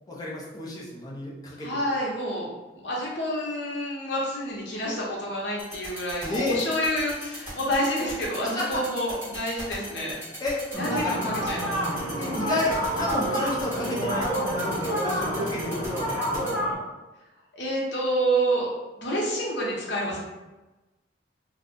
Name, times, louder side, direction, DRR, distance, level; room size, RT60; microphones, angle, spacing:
voice 1, 0.1-1.8 6.2-6.6 8.4-8.7 10.4-11.1 12.2-16.5, left 2 dB, 20° left, -5 dB, 0.6 m, -31 dB
voice 2, 1.6-2.5 2.7-10.2 10.7-11.8 17.5-18.7 19.0-20.2, equal, 65° left, -3 dB, 0.9 m, -28 dB
sound 1, 5.6-16.5, right 1 dB, 10° right, 1.4 m, -39 dB
sound 2, 10.7-16.7, equal, 40° right, 1.0 m, -28 dB
2.5 x 2.3 x 3.6 m, 1.1 s
head